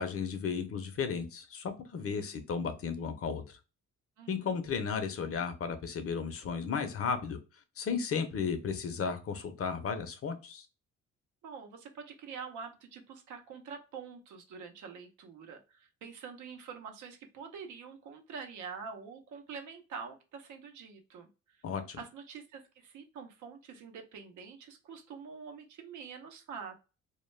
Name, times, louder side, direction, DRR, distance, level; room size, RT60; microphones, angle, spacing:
voice 1, 0.0-3.6 4.3-7.4 7.8-10.7 21.6-22.0, left 6 dB, 50° left, 0.6 m, -34 dB
voice 2, 2.0-2.4 4.2-4.5 11.4-21.6 22.0-26.8, right 6 dB, 75° right, 0.7 m, -46 dB
2.3 x 2.1 x 3.1 m
cardioid pair, 90°, 30 cm